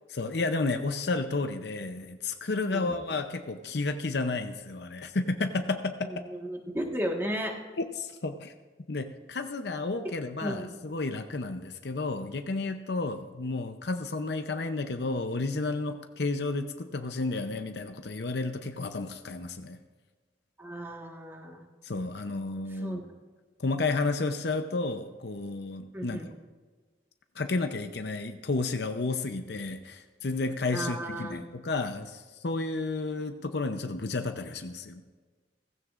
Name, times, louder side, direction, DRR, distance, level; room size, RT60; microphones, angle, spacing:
voice 1, 0.1-6.2 7.8-8.5 8.9-19.8 21.8-23.0 23.6-26.2 27.4-35.0, left 3 dB, 60° left, 7 dB, 0.7 m, -32 dB
voice 2, 6.0-7.5 10.4-10.7 20.6-21.6 22.7-23.0 25.9-26.3 30.7-31.4, equal, 10° right, 1 dB, 1.5 m, -34 dB
16.5 x 15.5 x 2.5 m, 1.4 s
head